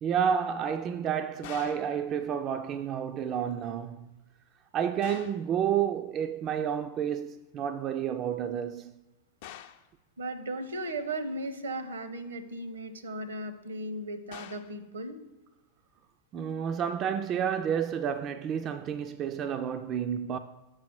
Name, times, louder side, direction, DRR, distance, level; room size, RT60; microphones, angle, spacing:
voice 1, 0.0-4.1 4.7-8.9 16.3-20.4, right 8 dB, 35° right, 0.3 m, -30 dB
sound 1, 1.4-2.0 5.0-5.5 9.4-9.9 14.3-14.8, left 10 dB, 50° left, 0.4 m, -46 dB
voice 2, 10.2-15.2, right 1 dB, 70° right, 0.7 m, -36 dB
5.8 x 4.8 x 5.9 m
figure-of-eight pair, 90°, 0 cm